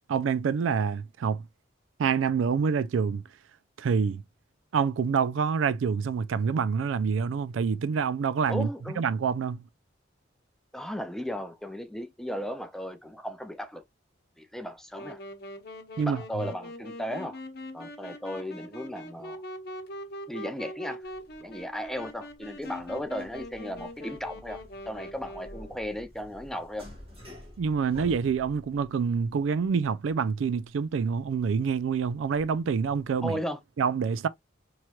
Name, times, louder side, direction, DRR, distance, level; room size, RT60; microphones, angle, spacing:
voice 1, 0.1-1.4 2.0-3.2 3.8-4.2 4.7-8.7 9.0-9.6 16.0-16.2 27.6-33.4 33.8-34.3, right 6 dB, 85° right, 0.4 m, -27 dB
voice 2, 8.5-9.0 10.7-13.8 14.4-15.2 16.0-17.4 17.7-19.4 20.3-21.0 21.4-26.9 33.2-33.6, equal, ahead, 0.5 m, -36 dB
Wind instrument woodwind instrument, 14.9-25.9, left 1 dB, 55° left, 0.8 m, -42 dB
sound 1, 21.0-33.2, left 1 dB, 30° right, 1.9 m, -51 dB
4.4 x 3.1 x 2.3 m
head